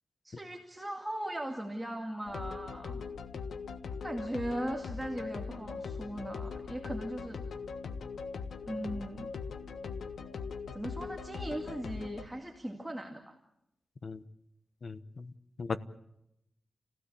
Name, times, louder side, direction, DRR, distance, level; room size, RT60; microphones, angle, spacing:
voice 1, 0.2-3.0 4.0-7.4 8.6-9.3 10.7-13.4, right 1 dB, 5° right, 2.3 m, -38 dB
sound 1, 2.3-12.2, left 5 dB, 85° left, 1.4 m, -40 dB
voice 2, 14.8-15.3 15.6-15.8, left 4 dB, 40° left, 1.1 m, -37 dB
29.5 x 17.0 x 8.4 m
wide cardioid pair, 165°, 0 cm